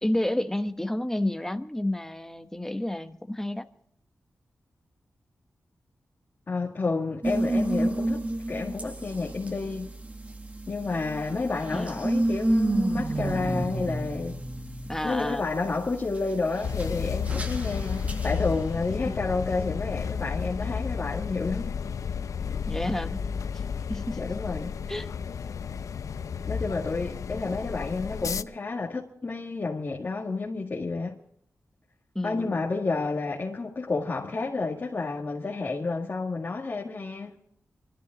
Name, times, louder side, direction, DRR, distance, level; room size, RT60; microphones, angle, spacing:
voice 1, 0.0-3.7 11.7-12.0 14.9-15.4 19.0-19.3 22.7-23.2 23.9-24.2 24.9-25.1 32.1-32.7, left 1 dB, 10° left, 1.2 m, -30 dB
voice 2, 6.5-9.9 10.7-14.4 15.0-21.8 24.2-24.7 26.5-31.2 32.2-37.4, left 3 dB, 40° left, 2.1 m, -30 dB
sound 1, 7.2-19.0, right 1 dB, 25° right, 1.6 m, -31 dB
sound 2, 16.6-28.4, left 6 dB, 75° left, 0.5 m, -32 dB
24.5 x 13.5 x 3.9 m
wide cardioid pair, 100°, 6 cm